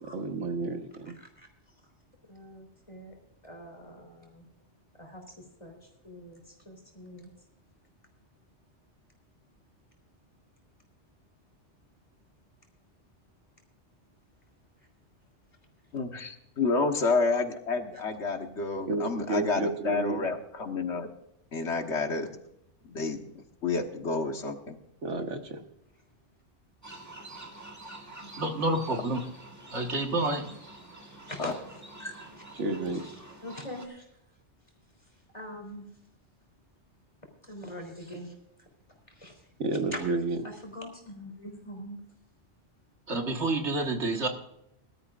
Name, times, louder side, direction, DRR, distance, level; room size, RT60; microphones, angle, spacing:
voice 1, 0.0-1.2 18.9-20.2 25.0-25.6 32.6-33.0 39.6-40.4, right 3 dB, 85° right, 6 dB, 1.6 m, -31 dB
voice 2, 2.3-3.2 3.4-4.4 4.9-5.2 5.6-5.8 6.0-7.3 28.2-28.5 31.3-31.5 32.0-32.4 33.4-34.0 35.3-35.9 37.5-38.3 39.1-39.3 39.9-40.0 40.4-42.0, equal, 25° left, 2 dB, 3.6 m, -43 dB
voice 3, 15.9-21.1 21.5-22.4 22.9-23.2 23.6-24.8 31.4-31.5, left 3 dB, 70° left, 5 dB, 1.6 m, -29 dB
sound 1, 26.8-33.9, right 2 dB, 15° right, 1.6 m, -47 dB
voice 4, 28.4-29.2 29.7-30.5 43.1-44.3, right 2 dB, 70° right, 3 dB, 1.9 m, -28 dB
21.5 x 13.0 x 2.5 m, 0.79 s
omnidirectional pair, 1.2 m